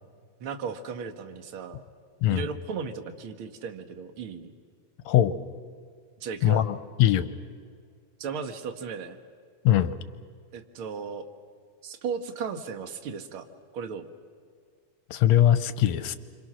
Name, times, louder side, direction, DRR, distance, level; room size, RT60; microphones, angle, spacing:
voice 1, 0.4-1.8 2.3-4.5 6.2-6.7 8.2-9.2 10.5-11.3 11.8-13.5 13.7-14.1, right 6 dB, 50° right, 8 dB, 1.9 m, -35 dB
voice 2, 6.4-6.7 7.0-7.3 9.7-10.0 15.1-16.2, left 12 dB, 70° left, 12 dB, 1.9 m, -21 dB
28.5 x 26.0 x 6.3 m, 2.1 s
omnidirectional pair, 3.6 m